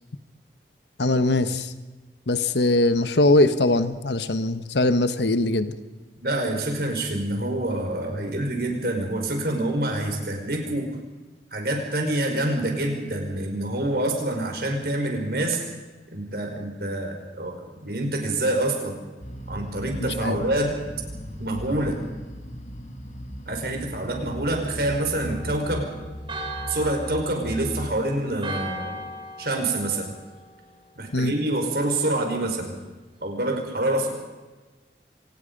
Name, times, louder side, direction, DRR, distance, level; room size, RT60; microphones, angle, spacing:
voice 1, 1.0-1.7 2.3-5.7 20.0-20.4 31.1-31.3, left 2 dB, 85° left, 11 dB, 1.2 m, -21 dB
voice 2, 6.2-10.9 11.5-15.6 16.1-17.6 17.8-19.0 19.5-20.8 21.4-22.0 23.5-25.9 26.7-29.0 29.4-30.2 31.0-32.7 33.2-34.1, right 1 dB, 60° right, 3 dB, 4.9 m, -26 dB
sound 1, 19.2-28.0, equal, 40° left, 2.2 m, -37 dB
Church bell, 25.3-31.0, right 1 dB, 30° right, 3.0 m, -38 dB
26.0 x 19.0 x 5.4 m, 1.2 s
head